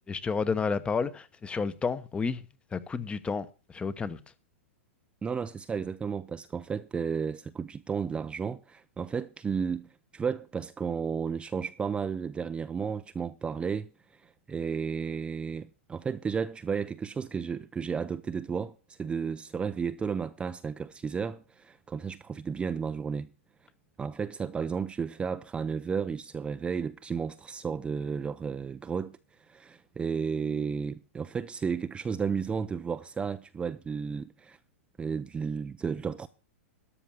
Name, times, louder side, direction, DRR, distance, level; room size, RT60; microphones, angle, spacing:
voice 1, 0.1-2.4 2.7-4.2, left 5 dB, 15° left, 0.9 m, -31 dB
voice 2, 5.2-23.3 24.0-29.2 29.5-34.6 35.0-36.3, right 6 dB, 15° right, 0.5 m, -33 dB
13.0 x 6.1 x 7.0 m
hypercardioid pair, 120°, 7 cm